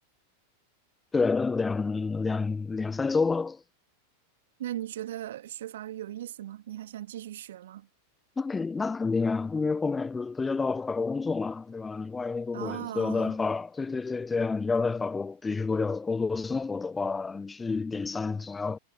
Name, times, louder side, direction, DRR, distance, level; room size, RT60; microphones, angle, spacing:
voice 1, 1.1-3.6 8.4-18.8, left 4 dB, 15° left, 0.4 m, -29 dB
voice 2, 4.6-7.9 12.5-13.4, right 12 dB, 60° right, 2.2 m, -38 dB
figure-of-eight pair, 90°, 0 cm